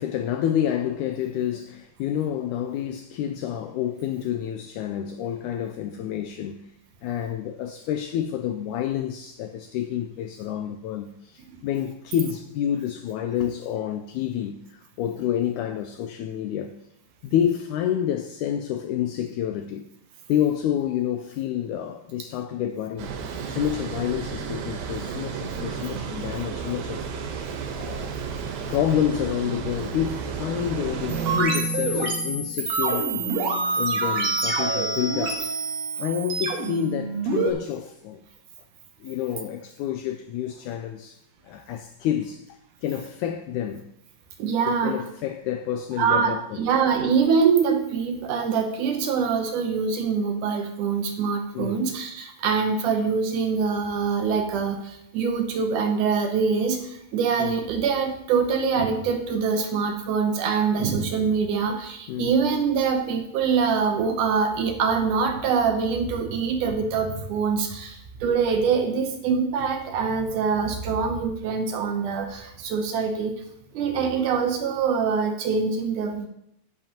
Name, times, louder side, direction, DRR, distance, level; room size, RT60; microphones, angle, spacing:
voice 1, 0.0-6.7 7.0-16.7 17.2-19.9 20.3-23.2 23.5-27.1 27.7-28.2 28.7-33.4 33.8-35.6 36.0-38.2 39.0-43.9 44.6-46.7 51.5-51.9 57.4-57.5 62.1-62.3, left 10 dB, 85° left, 1.8 m, -29 dB
Water, 23.0-31.4, right 6 dB, 85° right, 2.9 m, -32 dB
sound 1, 31.1-37.5, right 3 dB, 55° right, 2.5 m, -26 dB
voice 2, 44.4-44.9 46.0-73.3 73.7-76.3, right 5 dB, 70° right, 2.2 m, -24 dB
11.0 x 10.5 x 2.9 m
omnidirectional pair, 4.1 m